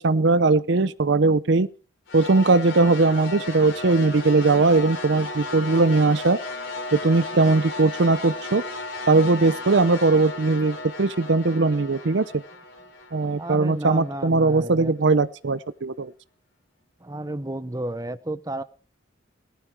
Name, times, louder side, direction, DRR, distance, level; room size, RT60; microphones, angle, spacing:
voice 1, 0.0-1.7 2.1-6.4 6.9-8.6 9.1-12.3 13.1-16.1, right 3 dB, 55° right, 15 dB, 0.6 m, -20 dB
sound 1, 2.1-14.3, left 2 dB, 65° left, 3.9 m, -35 dB
voice 2, 13.3-14.9 17.0-18.6, right 1 dB, 15° right, 12 dB, 0.7 m, -32 dB
18.5 x 12.5 x 4.6 m, 0.39 s
head